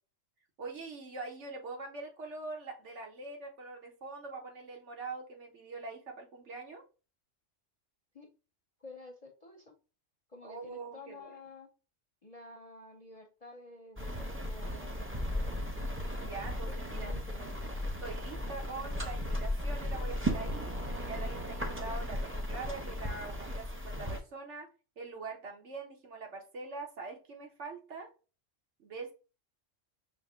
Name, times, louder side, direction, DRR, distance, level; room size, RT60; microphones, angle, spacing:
voice 1, 0.6-6.8 10.4-11.4 16.2-17.1 18.0-20.7 21.0-24.7 25.0-28.1 28.8-29.1, right 3 dB, 65° right, 2 dB, 1.3 m, -43 dB
voice 2, 8.8-9.7 10.3-11.7 12.2-15.6 16.4-17.6, left 2 dB, 40° left, 2 dB, 0.6 m, -51 dB
sound 1, 14.0-24.2, equal, 15° right, 0.5 m, -36 dB
5.7 x 2.2 x 3.6 m, 0.33 s
omnidirectional pair, 1.3 m